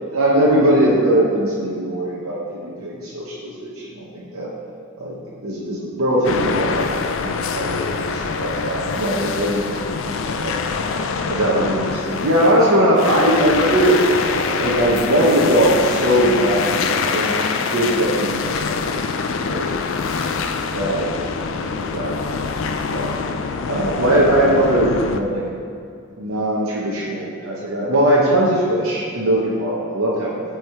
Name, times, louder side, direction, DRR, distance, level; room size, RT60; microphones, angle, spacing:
voice 1, 0.1-4.5 5.0-5.2 5.4-9.9 10.2-10.6 11.3-14.0 14.6-19.0 19.4-19.7 20.7-21.2 21.5-22.1 22.4-23.2 23.7-25.4 26.2-30.4, right 1 dB, 70° right, -5 dB, 0.8 m, -20 dB
sound 1, 6.2-25.2, left 5 dB, 60° left, 0.3 m, -24 dB
8.0 x 3.5 x 4.4 m, 2.4 s
head